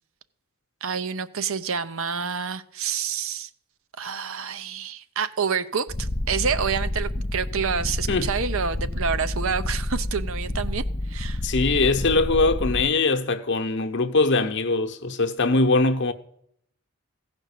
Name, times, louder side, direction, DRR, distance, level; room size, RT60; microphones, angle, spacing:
voice 1, 0.8-3.5 4.0-11.4, right 6 dB, 65° right, 0.7 m, -28 dB
Purr, 5.9-12.9, left 1 dB, 20° left, 0.5 m, -29 dB
voice 2, 11.4-16.1, left 3 dB, 50° left, 0.9 m, -22 dB
16.0 x 5.3 x 8.2 m
head